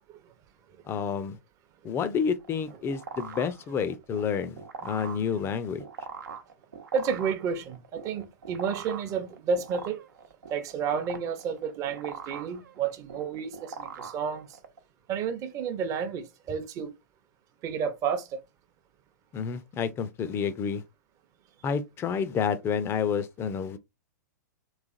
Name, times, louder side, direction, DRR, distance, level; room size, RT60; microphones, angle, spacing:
voice 1, 0.9-1.4 1.8-5.8 19.3-20.8 21.6-23.8, left 6 dB, 25° left, 0.6 m, -29 dB
sound 1, 2.4-14.8, right 6 dB, 75° right, 0.9 m, -42 dB
voice 2, 6.9-10.0 10.5-14.6 15.1-16.9 17.6-18.4, right 6 dB, 30° right, 0.8 m, -31 dB
3.3 x 3.2 x 2.5 m
hypercardioid pair, 110°, 10 cm